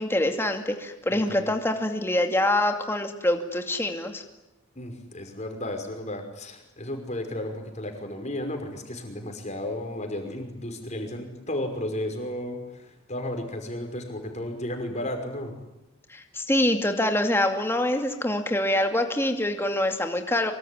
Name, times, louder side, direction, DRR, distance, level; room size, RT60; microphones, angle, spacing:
voice 1, 0.0-4.2 16.1-20.5, left 1 dB, 10° left, 5 dB, 2.4 m, -25 dB
voice 2, 1.1-1.5 4.8-15.5, left 1 dB, 35° left, 5 dB, 5.6 m, -33 dB
24.5 x 24.5 x 9.9 m, 0.93 s
head